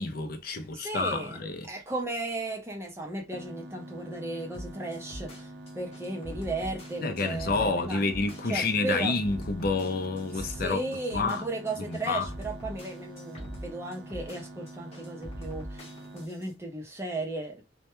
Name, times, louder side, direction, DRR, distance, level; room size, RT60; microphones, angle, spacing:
voice 1, 0.0-1.7 7.0-10.8 11.1-11.4 11.9-12.3, left 3 dB, 55° left, 0.5 m, -29 dB
voice 2, 0.7-8.0 8.4-9.2 10.3-17.6, right 2 dB, 15° right, 0.6 m, -35 dB
sound 1, 3.3-16.3, right 1 dB, 65° right, 0.5 m, -46 dB
sound 2, 4.5-16.5, equal, 35° left, 0.8 m, -42 dB
2.1 x 2.1 x 2.9 m
head